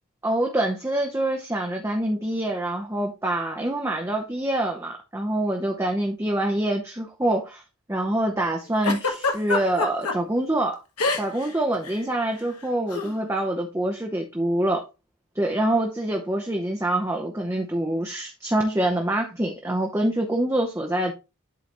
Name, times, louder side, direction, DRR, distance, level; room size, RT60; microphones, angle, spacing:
voice 1, 0.2-7.6 7.9-10.8 11.2-14.8 15.3-21.1, right 1 dB, 10° right, 0.7 m, -25 dB
Giggle, 8.8-10.1 11.0-11.5 11.7-12.0 12.9-13.1, left 3 dB, 90° left, 1.4 m, -25 dB
11.5 x 3.9 x 2.9 m
head